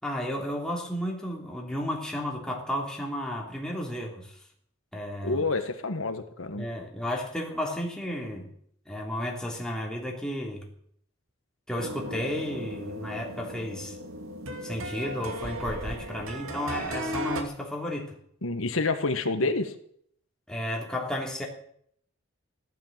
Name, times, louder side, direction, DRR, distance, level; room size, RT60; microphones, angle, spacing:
voice 1, 0.0-4.4 4.9-5.4 6.5-8.5 8.8-10.7 11.7-14.0 14.6-18.1 20.5-21.5, left 1 dB, 5° left, -1 dB, 3.3 m, -33 dB
voice 2, 5.2-6.7 18.4-19.7, left 3 dB, 85° left, 7 dB, 1.6 m, -28 dB
sound 1, 11.8-17.4, right 1 dB, 90° right, 2.4 m, -36 dB
15.0 x 12.5 x 7.5 m, 0.66 s
head